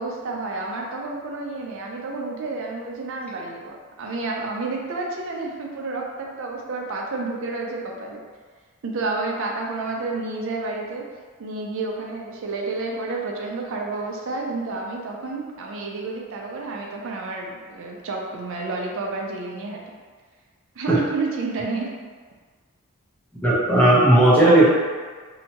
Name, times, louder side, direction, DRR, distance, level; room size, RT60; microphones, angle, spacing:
voice 1, 0.0-8.2 8.8-11.1 11.4-19.8 20.8-21.9, right 3 dB, 60° right, 0 dB, 0.4 m, -30 dB
voice 2, 23.4-24.6, right 1 dB, 5° left, -8 dB, 0.6 m, -15 dB
2.8 x 2.2 x 2.8 m, 1.5 s
head